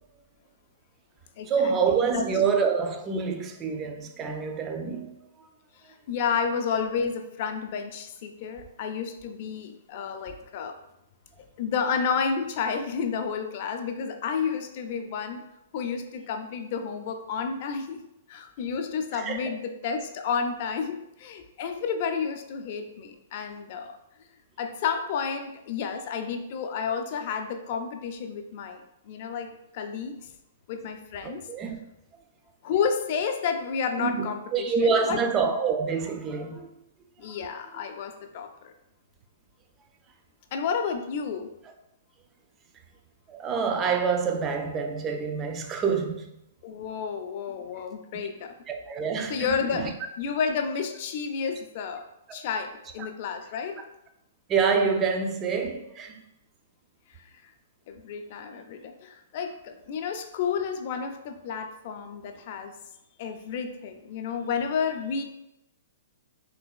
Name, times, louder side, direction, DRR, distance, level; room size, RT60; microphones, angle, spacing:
voice 1, 1.5-5.1 19.1-19.5 31.2-31.8 34.0-36.7 43.3-46.3 48.7-49.9 54.5-56.2, right 5 dB, 25° right, 0.4 m, -27 dB
voice 2, 5.8-10.8 11.6-15.4 15.7-18.0 18.3-24.0 24.6-28.8 29.1-30.2 30.7-31.4 32.6-35.2 37.2-38.7 40.5-41.5 46.6-48.5 49.3-49.9 50.2-52.0 52.3-53.8 57.9-62.7 63.2-65.2, left 6 dB, 50° left, 0.4 m, -31 dB
3.2 x 2.9 x 2.2 m
hypercardioid pair, 130°, 0 cm